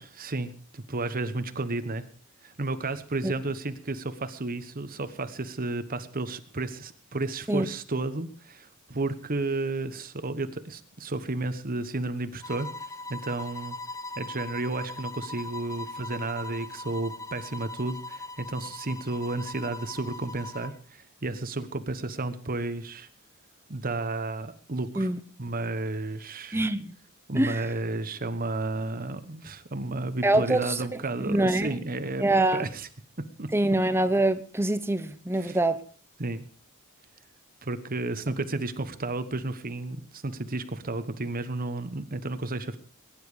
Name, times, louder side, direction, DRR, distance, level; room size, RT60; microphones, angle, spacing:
voice 1, 0.0-2.1 2.4-13.8 14.1-23.1 23.7-25.1 25.4-26.6 27.3-32.9 33.4-33.5 35.4-35.6 36.2-36.4 37.6-42.8, right 2 dB, 40° right, 1.2 m, -32 dB
sound 1, 12.4-20.8, left 2 dB, 15° left, 0.6 m, -40 dB
voice 2, 26.5-27.0 27.3-27.6 30.2-30.8 31.2-31.7 32.2-32.7 33.5-35.8, right 1 dB, 10° right, 0.9 m, -24 dB
20.5 x 10.5 x 5.0 m
head